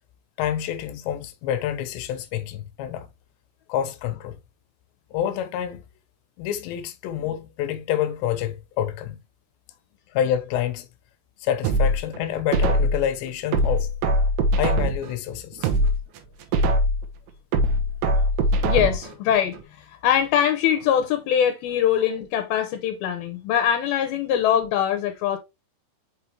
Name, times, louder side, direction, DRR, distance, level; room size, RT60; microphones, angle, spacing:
voice 1, 0.4-3.1 3.7-4.4 5.1-5.8 6.4-9.2 10.1-10.9 11.4-13.9 14.6-15.7, left 10 dB, 90° left, 3.1 m, -27 dB
sound 1, 11.6-13.1 13.5-15.1 15.5-17.1 17.5-19.1 19.5-19.6, right 1 dB, 75° right, 3.0 m, -21 dB
voice 2, 18.6-25.4, left 9 dB, 70° left, 2.5 m, -23 dB
6.7 x 5.6 x 3.2 m
omnidirectional pair, 5.0 m